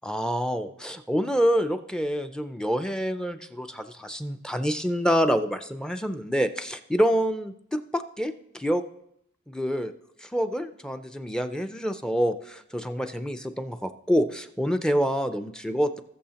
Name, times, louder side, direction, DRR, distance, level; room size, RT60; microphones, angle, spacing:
voice 1, 0.0-8.8 9.5-9.9 10.2-16.0, equal, 5° left, 8 dB, 0.4 m, -27 dB
19.5 x 6.9 x 2.9 m, 0.76 s
head